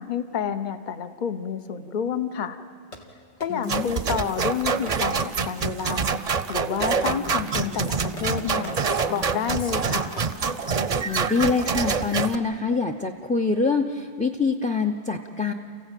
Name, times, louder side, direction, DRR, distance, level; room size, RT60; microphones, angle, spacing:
voice 1, 0.0-2.6 3.4-6.1 6.5-10.2, left 7 dB, 45° left, 10 dB, 1.0 m, -29 dB
Fireworks, 2.9-3.9 4.9-6.2 6.8-7.3 7.5-8.9 9.8-10.3, left 1 dB, 75° left, 2.4 m, -44 dB
voice 2, 3.5-3.9 11.0-15.5, left 4 dB, 10° left, 6 dB, 0.5 m, -25 dB
sound 1, 3.7-12.3, right 5 dB, 40° right, 0.7 m, -26 dB
Female speech woman speaking, 6.9-11.0, right 1 dB, 25° left, 1.2 m, -41 dB
29.0 x 15.0 x 9.1 m, 2.2 s
omnidirectional pair, 1.1 m